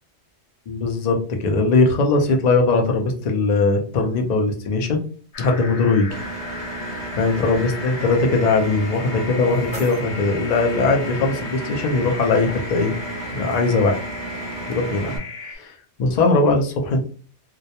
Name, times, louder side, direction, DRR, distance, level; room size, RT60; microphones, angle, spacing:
voice 1, 0.7-5.0 5.4-6.2 7.2-12.9 13.3-14.0 14.7-15.1 15.5-17.1, left 3 dB, 55° left, 2 dB, 0.5 m, -20 dB
sound 1, 5.3-15.6, left 4 dB, 90° left, 1.0 m, -36 dB
Engine, 6.1-15.2, right 2 dB, 50° right, 0.6 m, -33 dB
sound 2, 9.0-11.0, left 1 dB, 20° left, 0.9 m, -42 dB
2.2 x 2.1 x 2.7 m, 0.42 s
omnidirectional pair, 1.2 m